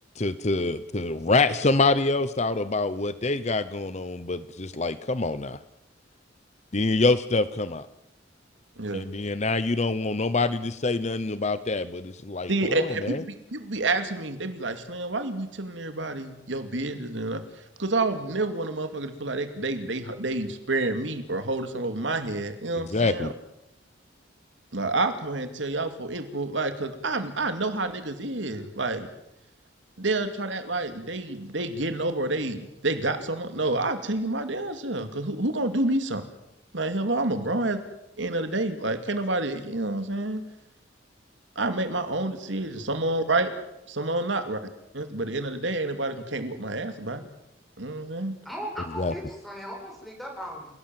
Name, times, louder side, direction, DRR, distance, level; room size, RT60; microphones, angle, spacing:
voice 1, 0.2-5.6 6.7-7.9 8.9-13.2 22.7-23.3 49.0-49.1, left 3 dB, 35° left, 14 dB, 0.9 m, -26 dB
voice 2, 12.5-17.4 17.8-23.3 24.7-29.1 30.0-36.3 36.7-37.8 38.2-40.4 41.6-43.5 43.9-44.6 44.9-47.3 47.8-48.3, right 2 dB, 80° right, 8 dB, 2.6 m, -28 dB
voice 3, 48.4-50.7, equal, ahead, 0 dB, 7.5 m, -37 dB
29.5 x 18.0 x 7.7 m, 0.85 s
head